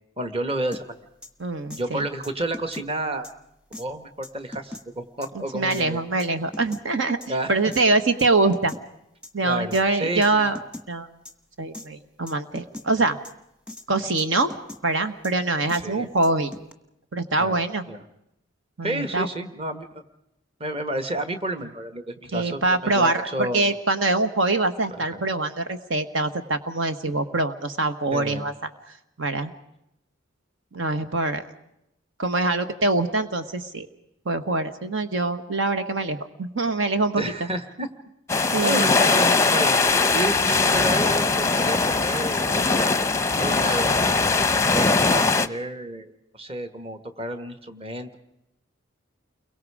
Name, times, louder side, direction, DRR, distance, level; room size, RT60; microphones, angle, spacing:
voice 1, 0.2-1.0 1.8-3.3 3.8-6.0 7.3-7.5 9.4-10.5 15.8-16.1 17.4-17.6 17.9-18.0 18.8-20.0 20.6-23.7 25.0-25.2 28.1-28.5 37.2-37.9 38.3-39.8 40.1-43.0 43.3-44.1 44.7-48.2, right 1 dB, 30° right, 8 dB, 1.7 m, -31 dB
sound 1, 0.7-0.8 1.2-1.3 1.7-1.8 2.2-2.9 3.2-3.3 3.7-3.9 4.2-4.8 5.2-5.3 5.7-5.8 6.2-6.8 7.2-7.3 7.7-7.8 8.2-8.8 9.2-9.3 9.7-9.8 10.2-10.3 10.5-10.9 11.2-11.3 11.7-11.9 12.3-12.9 13.2-13.3 13.7-13.9 14.2-14.8 15.2-15.3 15.7-15.8 16.2-16.7, left 1 dB, 5° right, 1.4 m, -39 dB
voice 2, 1.4-2.0 5.5-7.2 7.5-8.7 9.3-10.6 10.9-11.1 11.6-13.2 13.9-14.5 14.8-16.5 17.1-17.9 18.8-19.3 22.3-28.5 29.2-29.5 30.7-31.4 32.2-33.9 34.2-37.3 38.5-38.8, right 2 dB, 70° right, 9 dB, 1.4 m, -24 dB
sound 2, 38.3-45.5, left 3 dB, 15° left, 0.7 m, -21 dB
30.0 x 23.0 x 4.9 m, 0.82 s
head